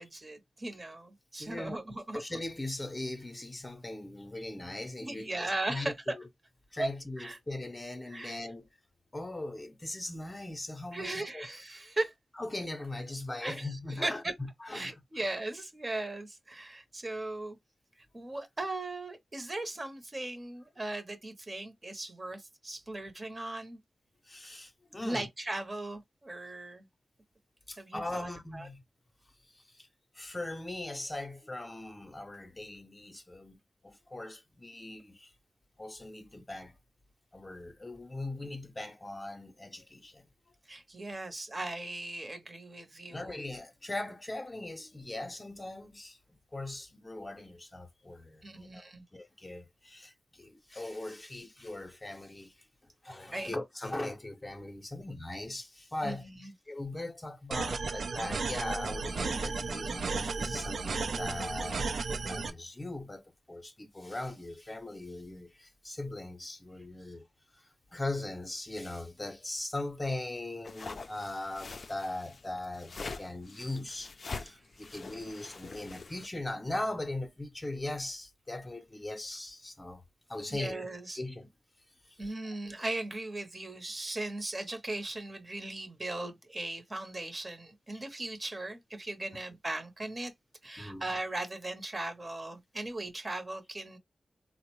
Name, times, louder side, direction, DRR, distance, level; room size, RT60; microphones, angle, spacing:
voice 1, 0.0-2.2 5.0-6.2 6.8-6.9 7.2-7.4 8.1-8.4 10.9-12.1 13.4-14.3 14.7-17.6 18.1-23.8 25.0-26.8 27.8-28.7 40.7-43.4 48.4-49.0 53.3-53.5 56.0-56.5 74.8-75.0 80.5-81.2 82.2-90.3 90.6-94.0, right 2 dB, 30° right, 0.7 m, -38 dB
voice 2, 1.4-1.8 2.1-6.2 6.7-8.6 9.1-11.5 12.4-15.0 24.3-25.3 27.7-28.8 29.5-29.9 30.1-33.6 33.8-35.3 35.8-36.7 37.3-40.2 43.1-46.2 46.5-48.9 49.1-52.5 53.0-67.3 67.9-80.0 80.3-80.8 81.1-81.5 82.1-82.2 82.4-82.6 87.9-88.0 90.8-91.0, left 2 dB, 25° left, 0.6 m, -40 dB
sound 1, 57.5-62.5, right 4 dB, 85° right, 0.5 m, -34 dB
sound 2, 70.6-76.3, left 4 dB, 55° left, 0.4 m, -44 dB
3.7 x 2.0 x 3.0 m
wide cardioid pair, 95°, 0 cm